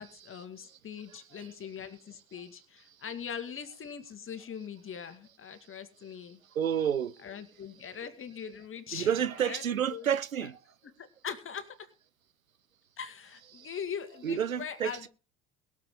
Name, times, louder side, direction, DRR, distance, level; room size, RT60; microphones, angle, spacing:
voice 1, 0.0-6.4 7.2-9.1 9.4-9.6 9.9-10.1 11.0-11.9 13.0-15.1, left 7 dB, 30° left, 2.0 m, -41 dB
voice 2, 1.1-1.5 6.5-7.1 8.9-10.6 13.5-13.8 14.2-15.1, right 8 dB, 90° right, 0.7 m, -30 dB
21.0 x 7.4 x 3.8 m
figure-of-eight pair, 65°, 40 cm